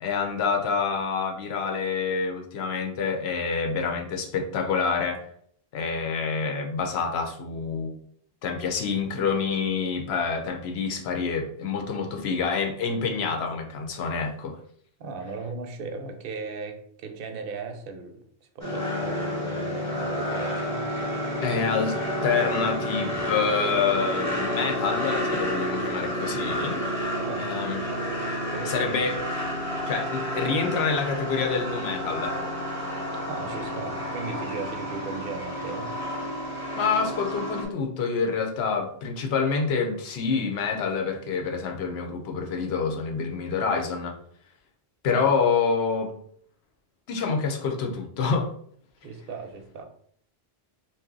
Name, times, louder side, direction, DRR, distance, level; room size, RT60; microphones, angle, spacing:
voice 1, 0.0-5.2 5.7-7.9 8.4-14.6 21.4-26.9 27.4-27.8 28.6-29.2 29.9-32.4 36.7-44.2 45.0-46.1 47.1-48.5, left 5 dB, 75° left, 3 dB, 0.8 m, -27 dB
voice 2, 15.0-21.1 27.1-27.5 28.5-28.9 33.3-35.9 45.1-45.3 49.0-49.8, right 4 dB, 65° right, 5 dB, 0.7 m, -37 dB
sound 1, 18.6-37.6, equal, 15° left, 1.0 m, -30 dB
2.7 x 2.2 x 3.6 m, 0.62 s
omnidirectional pair, 1.1 m